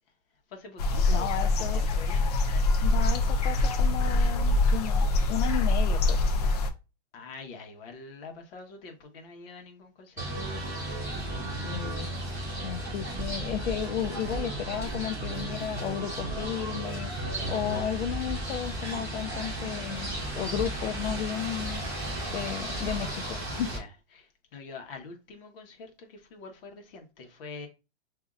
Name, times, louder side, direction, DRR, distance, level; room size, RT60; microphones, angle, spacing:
voice 1, 0.5-2.2 7.1-10.5 17.4-17.6 23.7-23.9 24.1-27.7, left 4 dB, 50° left, 1.2 m, -45 dB
sound 1, 0.8-6.7, left 2 dB, 35° left, 0.4 m, -24 dB
voice 2, 1.1-2.0 2.8-6.2 11.6-12.1 12.6-20.1 20.4-21.8 22.3-23.7, left 10 dB, 80° left, 0.5 m, -33 dB
sound 2, 10.2-23.8, right 1 dB, 10° right, 2.3 m, -34 dB
5.1 x 2.7 x 2.4 m
hypercardioid pair, 165°, 35 cm